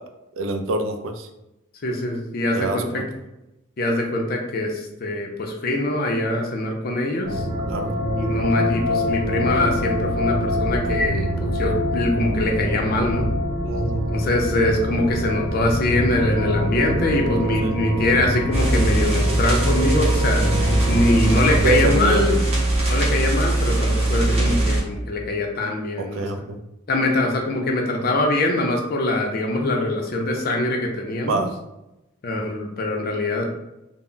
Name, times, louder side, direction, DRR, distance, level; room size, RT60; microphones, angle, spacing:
voice 1, 0.4-1.3 2.5-3.0 7.7-7.9 13.6-14.2 17.6-17.7 20.4-21.0 21.5-22.2 26.0-26.6 31.2-31.5, right 2 dB, 65° right, 6 dB, 0.3 m, -26 dB
voice 2, 1.8-3.0 3.8-7.5 8.2-13.3 14.1-20.4 20.9-22.4 22.9-26.3 26.9-31.4 32.2-33.4, left 1 dB, 45° left, 2 dB, 0.4 m, -23 dB
sound 1, 7.2-21.8, equal, 90° right, 0.9 m, -25 dB
sound 2, 18.5-24.8, right 2 dB, 30° right, 0.7 m, -21 dB
2.1 x 2.0 x 3.8 m, 0.91 s
head